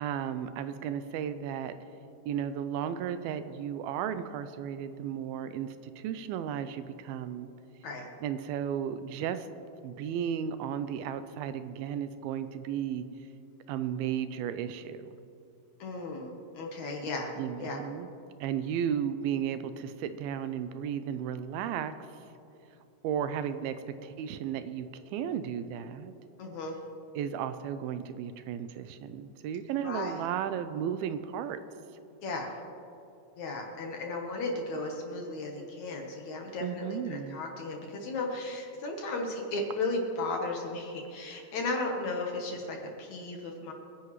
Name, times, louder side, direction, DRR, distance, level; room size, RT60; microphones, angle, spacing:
voice 1, 0.0-1.8 2.3-7.5 8.2-9.5 9.8-13.1 13.7-15.2 17.4-18.1 18.4-21.9 23.0-26.1 27.2-31.6 36.6-37.4, right 9 dB, 80° right, 11 dB, 2.4 m, -34 dB
voice 2, 15.8-17.3 17.6-17.8 26.4-26.8 29.8-30.2 32.2-32.5 33.4-43.7, left 2 dB, 65° left, 1 dB, 2.1 m, -35 dB
25.5 x 10.5 x 3.1 m, 2.9 s
omnidirectional pair, 4.4 m